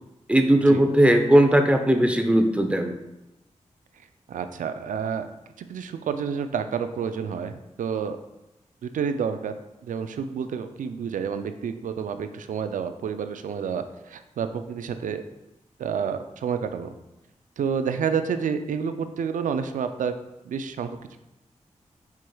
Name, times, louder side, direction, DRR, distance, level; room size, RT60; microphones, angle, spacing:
voice 1, 0.3-2.9, right 1 dB, 10° right, 5 dB, 0.6 m, -18 dB
voice 2, 4.3-5.3 5.6-8.2 8.8-9.5 9.8-15.2 15.8-16.9 17.6-20.1 20.5-21.0, right 7 dB, 75° right, 9 dB, 0.4 m, -29 dB
4.6 x 4.4 x 2.3 m, 0.93 s
cardioid pair, 40°, 13 cm